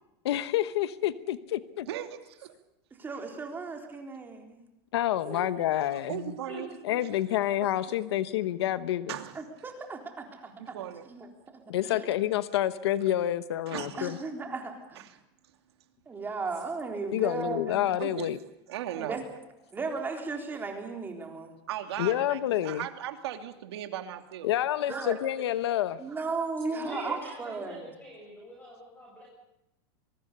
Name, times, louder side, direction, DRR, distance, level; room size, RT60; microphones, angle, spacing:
voice 1, 0.2-1.9 4.9-6.3 6.9-9.2 11.7-14.2 17.1-18.4 22.0-22.9 24.4-26.0, left 12 dB, 90° left, 13 dB, 1.1 m, -28 dB
voice 2, 1.9-2.5 6.1-6.7 7.6-7.7 9.1-9.4 10.6-11.1 13.7-14.1 15.0-15.2 18.0-18.3 18.7-19.2 21.7-24.5, right 12 dB, 90° right, 6 dB, 2.8 m, -37 dB
voice 3, 3.0-4.6 9.3-10.8 11.1-12.1 14.0-15.0 16.1-17.9 19.0-19.2 19.7-21.6 24.9-25.1 26.0-27.9, right 4 dB, 15° right, 3 dB, 3.8 m, -36 dB
voice 4, 26.7-29.3, equal, 10° left, -2 dB, 7.3 m, -43 dB
23.5 x 23.0 x 6.8 m, 0.88 s
supercardioid pair, 155°, 13 cm